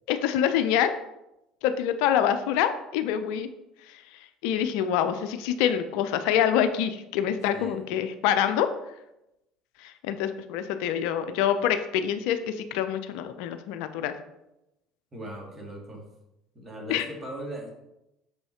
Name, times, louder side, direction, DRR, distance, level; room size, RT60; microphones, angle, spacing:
voice 1, 0.1-0.9 1.6-3.5 3.9-4.0 4.4-8.7 9.8-14.1 16.9-17.0, left 9 dB, 65° left, 10 dB, 0.4 m, -26 dB
voice 2, 7.5-7.9 15.1-16.0 16.5-17.7, right 1 dB, 30° right, -1 dB, 2.1 m, -39 dB
6.3 x 5.4 x 2.8 m, 0.89 s
hypercardioid pair, 65°, 0 cm